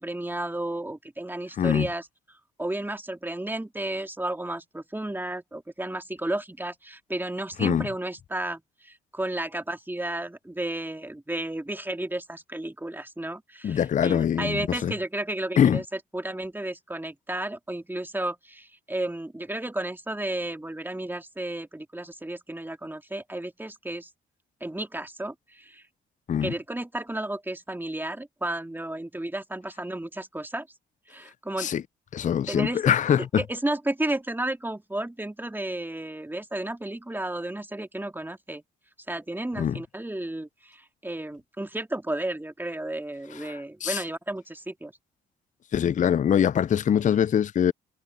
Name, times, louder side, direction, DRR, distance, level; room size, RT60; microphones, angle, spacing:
voice 1, 0.0-2.1 2.6-15.8 16.1-24.1 24.6-25.8 26.4-30.7 31.1-31.7 32.5-38.6 39.1-44.9, right 1 dB, 10° right, 2.6 m, -33 dB
voice 2, 1.6-1.9 7.6-7.9 13.6-14.9 15.6-15.8 26.3-26.5 31.6-31.8 32.1-33.4 39.6-39.8 43.4-44.0 45.7-47.7, left 9 dB, 40° left, 0.5 m, -23 dB
supercardioid pair, 60°, 21 cm